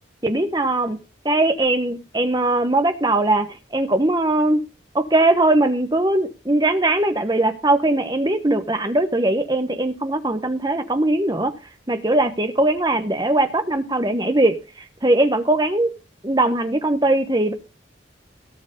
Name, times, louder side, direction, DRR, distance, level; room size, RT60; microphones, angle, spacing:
voice 1, 0.2-1.0 1.2-3.5 3.7-4.6 4.9-11.5 11.9-14.5 15.0-15.9 16.2-17.5, right 2 dB, 20° right, 8 dB, 1.1 m, -20 dB
17.5 x 6.2 x 5.2 m, 0.32 s
head